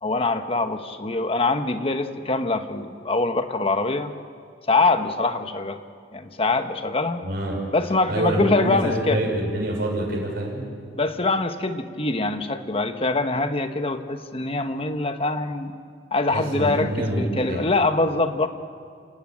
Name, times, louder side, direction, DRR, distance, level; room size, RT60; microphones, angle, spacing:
voice 1, 0.0-4.1 4.7-5.8 6.1-7.2 7.7-9.2 11.0-15.7 16.1-18.5, left 3 dB, 35° left, 8 dB, 1.2 m, -24 dB
voice 2, 7.2-7.6 8.1-10.7 16.3-17.6, right 1 dB, 60° right, -2 dB, 6.2 m, -26 dB
28.0 x 17.0 x 8.8 m, 2.2 s
head